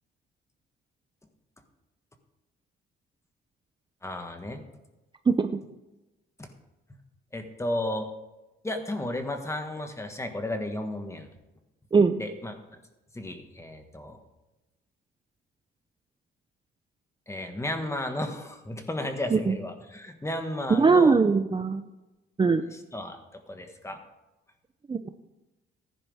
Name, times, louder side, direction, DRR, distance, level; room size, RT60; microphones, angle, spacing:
voice 1, 4.0-4.6 6.4-6.5 7.3-8.1 8.6-11.3 12.2-12.6 13.1-14.2 17.3-21.2 22.7-24.0, left 1 dB, 15° left, 5 dB, 1.7 m, -33 dB
voice 2, 20.7-21.8 22.4-22.6 24.9-25.1, right 4 dB, 25° right, 8 dB, 0.6 m, -21 dB
15.0 x 10.0 x 3.6 m, 1.0 s
cardioid pair, 90°, 20 cm